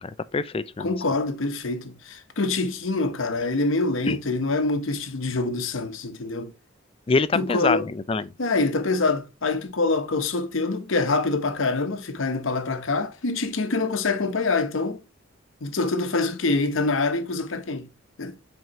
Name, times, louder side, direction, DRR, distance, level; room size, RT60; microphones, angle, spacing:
voice 1, 0.0-0.9 4.1-4.2 7.1-8.3, left 4 dB, 25° left, 0.4 m, -25 dB
voice 2, 0.8-6.5 7.3-7.9 8.4-15.0 15.6-17.9 18.2-18.3, left 3 dB, 75° left, 0.9 m, -25 dB
7.9 x 4.6 x 3.0 m
head